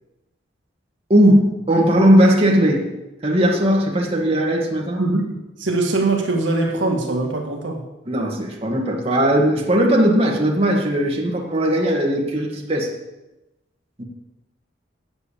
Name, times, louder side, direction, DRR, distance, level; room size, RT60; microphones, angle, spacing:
voice 1, 1.1-2.9 3.2-5.0 8.1-12.9 14.0-14.1, equal, 30° right, -1 dB, 1.8 m, -18 dB
voice 2, 5.0-7.8, right 2 dB, 70° right, 2 dB, 1.6 m, -22 dB
8.2 x 8.0 x 8.4 m, 0.99 s
head